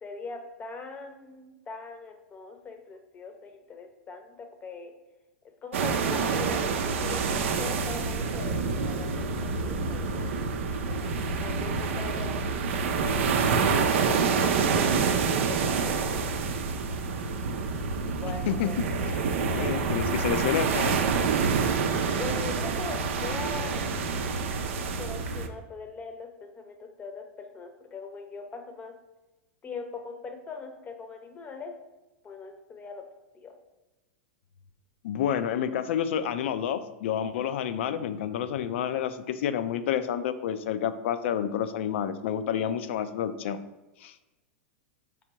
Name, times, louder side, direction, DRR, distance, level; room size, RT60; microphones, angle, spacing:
voice 1, 0.0-4.9 5.6-10.3 10.9-11.1 11.4-16.2 18.2-19.1 22.1-23.9 25.0-28.9 29.6-31.8 32.2-33.0 33.3-33.5, left 4 dB, 20° left, 5 dB, 0.7 m, -41 dB
sound 1, 5.7-25.5, right 5 dB, 75° right, 0.5 m, -27 dB
voice 2, 19.4-21.0 35.0-43.6 44.0-44.1, left 9 dB, 70° left, 11 dB, 0.4 m, -29 dB
4.8 x 3.4 x 2.9 m, 1.1 s
hypercardioid pair, 130°, 7 cm